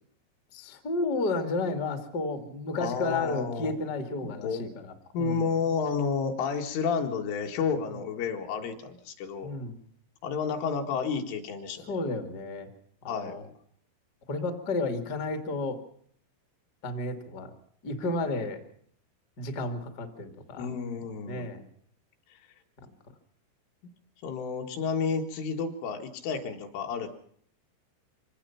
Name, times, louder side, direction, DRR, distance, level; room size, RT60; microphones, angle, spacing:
voice 1, 0.5-5.5 7.9-8.0 9.4-9.8 11.9-12.7 13.0-13.4 14.3-15.8 16.8-17.5 17.8-18.6 19.4-20.7 21.3-21.6, left 2 dB, 55° left, 7 dB, 1.1 m, -32 dB
voice 2, 2.8-3.7 4.2-4.7 5.1-9.5 10.2-11.9 13.1-13.4 20.6-21.5 24.2-27.1, left 5 dB, 75° left, 3 dB, 4.2 m, -31 dB
25.0 x 18.0 x 5.8 m, 0.62 s
omnidirectional pair, 5.8 m